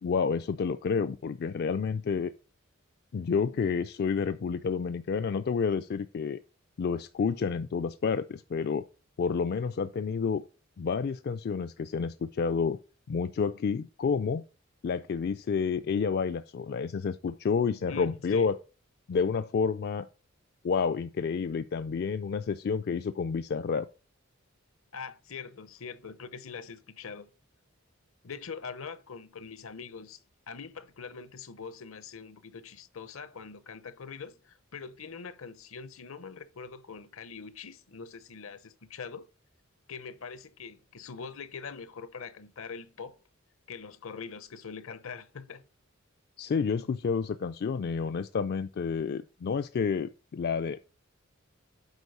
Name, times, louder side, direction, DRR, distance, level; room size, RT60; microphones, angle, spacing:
voice 1, 0.0-2.3 3.1-6.4 6.8-8.8 9.2-10.4 10.8-12.8 13.1-14.4 14.8-18.6 19.1-20.1 20.6-23.9 46.4-50.8, left 5 dB, 50° left, 0.4 m, -29 dB
voice 2, 17.9-18.5 24.9-27.3 28.2-39.3 39.9-43.2 43.7-45.7, left 5 dB, 75° left, 0.8 m, -43 dB
8.2 x 4.8 x 5.3 m
head